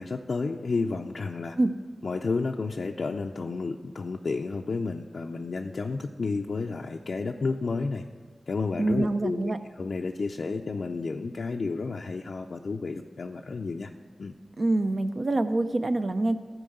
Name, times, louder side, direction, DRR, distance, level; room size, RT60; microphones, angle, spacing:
voice 1, 0.0-1.6 2.0-8.0 8.5-13.9 14.2-14.3, left 4 dB, 75° left, 1 dB, 0.4 m, -31 dB
voice 2, 8.8-9.6 14.6-16.4, right 2 dB, 55° right, 9 dB, 0.6 m, -25 dB
12.0 x 4.6 x 7.8 m, 1.4 s
cardioid pair, 45°, 0 cm